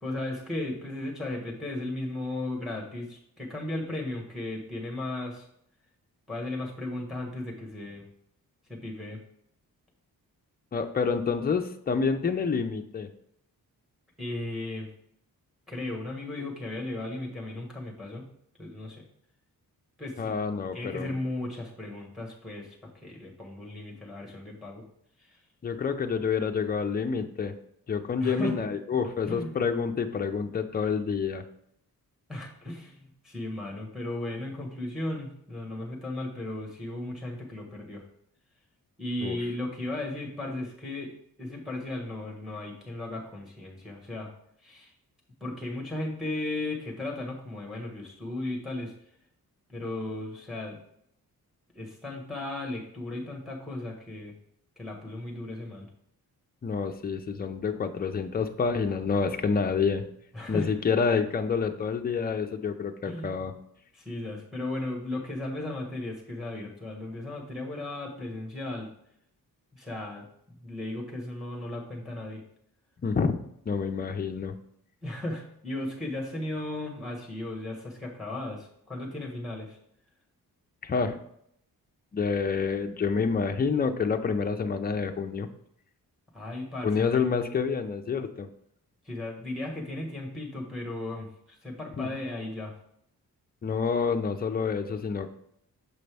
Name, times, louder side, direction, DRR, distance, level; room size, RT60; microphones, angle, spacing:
voice 1, 0.0-5.5 6.3-8.0 8.7-9.2 14.2-14.9 15.7-18.2 18.6-19.0 20.0-20.3 20.7-24.8 25.2-25.4 28.2-28.6 29.3-29.6 32.3-38.0 39.0-41.1 41.4-44.3 44.6-44.9 45.4-48.9 49.7-50.8 51.7-54.3 54.8-55.9 60.3-60.7 63.0-63.5 63.9-68.9 69.7-72.4 75.0-79.8 86.3-87.2 89.0-92.7, left 2 dB, ahead, 0 dB, 1.4 m, -36 dB
voice 2, 10.7-13.1 20.2-21.1 25.6-27.5 27.9-31.4 39.2-39.4 56.6-60.1 60.5-63.5 73.0-73.4 73.7-74.6 80.8-81.2 82.1-85.5 86.8-88.5 92.0-92.1 93.6-95.3, left 5 dB, 25° left, 6 dB, 0.5 m, -28 dB
6.8 x 5.2 x 3.4 m, 0.72 s
wide cardioid pair, 150°, 36 cm